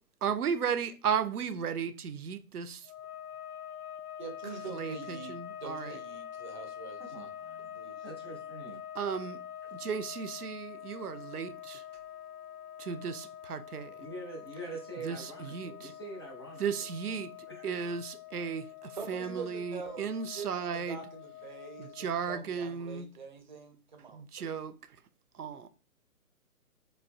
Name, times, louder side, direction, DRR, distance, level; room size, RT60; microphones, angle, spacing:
voice 1, 0.2-2.9 4.7-6.0 9.0-9.4 9.7-11.8 12.8-14.0 15.0-15.9 16.6-17.3 17.6-21.0 21.8-23.1 24.1-24.7 25.3-25.7, right 7 dB, 85° right, 0.5 m, -35 dB
sound 1, 2.8-22.5, left 10 dB, 85° left, 0.5 m, -46 dB
voice 2, 4.2-7.3 7.7-8.4 18.9-24.5, right 5 dB, 35° right, 0.5 m, -45 dB
voice 3, 7.1-8.8 14.0-16.7 17.1-17.7, right 2 dB, 20° left, 0.4 m, -45 dB
4.2 x 2.3 x 2.3 m
figure-of-eight pair, 135°, 44 cm